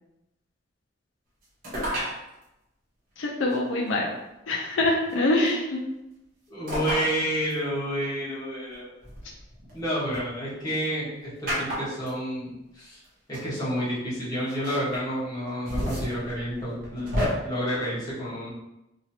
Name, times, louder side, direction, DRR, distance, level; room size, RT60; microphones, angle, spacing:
sound 1, 1.6-2.2 3.5-3.6 5.1-5.5 6.7-7.1 7.5-7.6 9.0-10.2 11.5-12.1 13.0-13.1 13.3-13.5 14.5-15.0 15.5-17.3, equal, 50° right, 1.1 m, -31 dB
voice 1, 3.2-4.1 4.5-5.8, left 2 dB, 85° left, -1 dB, 0.5 m, -24 dB
voice 2, 6.5-8.9 9.7-13.0 13.3-17.1 17.4-18.5, equal, 20° left, -10 dB, 1.2 m, -30 dB
2.9 x 2.8 x 2.8 m, 0.92 s
head